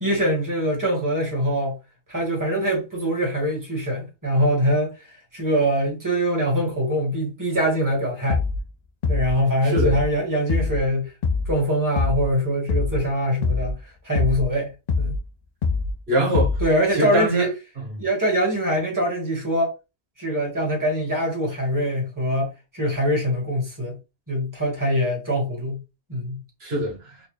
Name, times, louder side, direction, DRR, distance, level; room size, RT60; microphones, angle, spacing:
voice 1, 0.0-1.7 2.1-8.4 9.1-11.1 11.5-13.8 14.0-14.7 15.0-15.1 16.6-17.5 18.0-19.7 20.2-22.5 22.7-24.0 24.3-25.8 26.1-26.4, equal, 15° right, 1.6 m, -23 dB
sound 1, 8.3-8.7 9.0-9.4 9.8-10.1 10.5-10.9 11.2-11.6 12.0-12.3 12.7-13.1 13.4-13.8 14.1-14.5 14.9-15.3 15.6-16.0 16.3-16.8, left 4 dB, 55° left, 0.4 m, -24 dB
voice 2, 9.6-10.0 16.1-16.6 16.9-17.5 17.9-18.0 26.6-27.2, right 1 dB, 70° right, 1.5 m, -23 dB
4.1 x 2.3 x 3.2 m
omnidirectional pair, 1.1 m